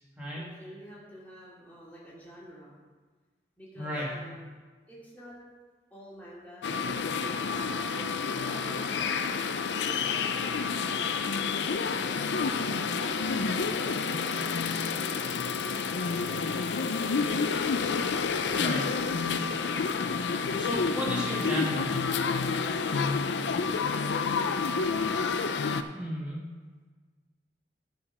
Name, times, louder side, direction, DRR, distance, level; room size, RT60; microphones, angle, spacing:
voice 1, 0.3-2.7 3.6-4.5 4.9-5.4 5.9-7.0 7.3-8.2 8.4-9.2 9.7-12.9 13.8-15.4 15.7-17.2 22.8-24.7, equal, 10° left, -8 dB, 2.6 m, -48 dB
voice 2, 3.8-4.1 18.5-18.8 20.4-22.0 25.9-26.4, equal, 10° right, -7 dB, 2.0 m, -33 dB
sound 1, 6.6-25.8, left 5 dB, 85° left, 0.5 m, -29 dB
11.5 x 5.1 x 5.4 m, 1.4 s
head